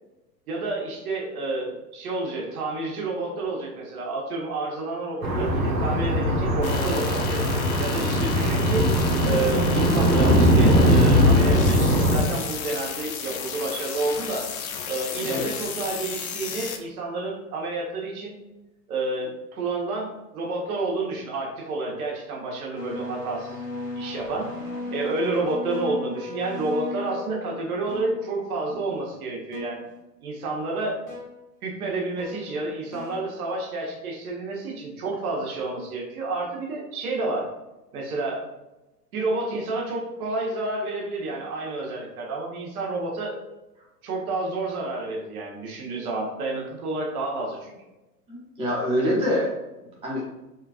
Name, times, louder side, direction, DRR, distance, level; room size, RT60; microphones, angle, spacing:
voice 1, 0.5-8.9 9.2-14.5 14.9-18.4 18.9-23.6 23.9-24.5 24.9-29.9 30.2-31.0 31.6-37.5 37.9-38.5 39.1-43.4 44.0-47.7, right 2 dB, 60° right, -2 dB, 1.2 m, -30 dB
sound 1, 5.2-12.2, equal, 85° right, 1.1 m, -20 dB
sound 2, 6.6-16.8, left 6 dB, 55° left, 0.7 m, -33 dB
voice 2, 15.2-15.5 48.3-49.5 50.0-50.4, equal, 10° right, -5 dB, 0.8 m, -25 dB
sound 3, 22.7-27.6 27.9-28.2 28.7-28.9 29.5-29.9 31.1-31.3 32.2-32.6 32.9-33.2, left 2 dB, 15° left, 0.3 m, -36 dB
4.4 x 2.4 x 2.4 m, 1.0 s
hypercardioid pair, 110°, 49 cm